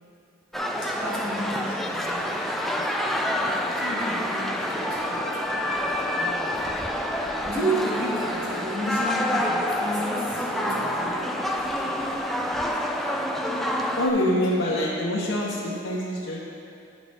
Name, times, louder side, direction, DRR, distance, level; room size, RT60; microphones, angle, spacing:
sound 1, 0.5-14.1, left 1 dB, ahead, 0.3 m, -27 dB
voice 1, 0.8-2.5 3.3-5.5 5.9-6.5 7.4-11.5 14.2-14.5, right 1 dB, 45° right, -8 dB, 1.7 m, -32 dB
Harp, 1.1-14.9, left 1 dB, 20° right, 0.9 m, -48 dB
voice 2, 14.0-16.5, left 1 dB, 75° left, -7 dB, 0.9 m, -25 dB
10.5 x 5.2 x 3.3 m, 2.6 s
head